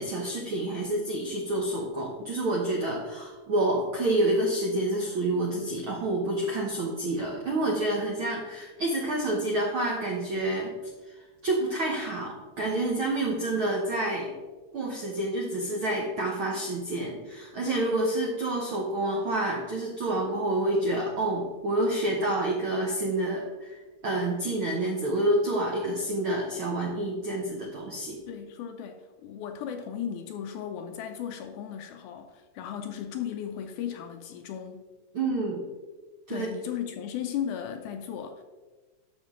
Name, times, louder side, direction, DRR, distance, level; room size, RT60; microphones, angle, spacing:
voice 1, 0.0-10.7 11.1-11.2 11.4-14.3 14.7-28.2 35.1-35.6 36.3-36.5, right 1 dB, 70° right, -2 dB, 1.2 m, -28 dB
voice 2, 28.3-34.9 36.3-38.4, left 9 dB, 80° left, 6 dB, 1.9 m, -36 dB
12.5 x 5.3 x 3.7 m, 1.3 s
omnidirectional pair, 3.9 m